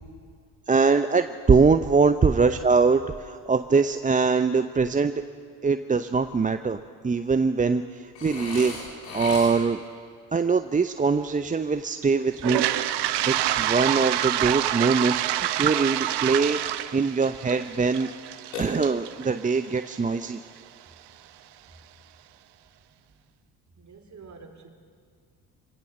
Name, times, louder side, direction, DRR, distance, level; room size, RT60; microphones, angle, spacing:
voice 1, 0.7-5.2 5.6-8.8 9.1-9.8 10.3-12.7 13.3-16.6 16.9-18.1 18.6-20.4, right 4 dB, 15° right, 9 dB, 0.7 m, -23 dB
Burping eructation, 8.2-9.9 18.5-19.3, left 3 dB, 80° left, 3.9 m, -36 dB
Toilet flush, 12.3-20.3, right 13 dB, 55° right, 1.2 m, -27 dB
voice 2, 23.8-24.7, right 2 dB, 35° right, 4 dB, 3.7 m, -44 dB
25.0 x 17.0 x 6.5 m, 2.1 s
hypercardioid pair, 55°, 49 cm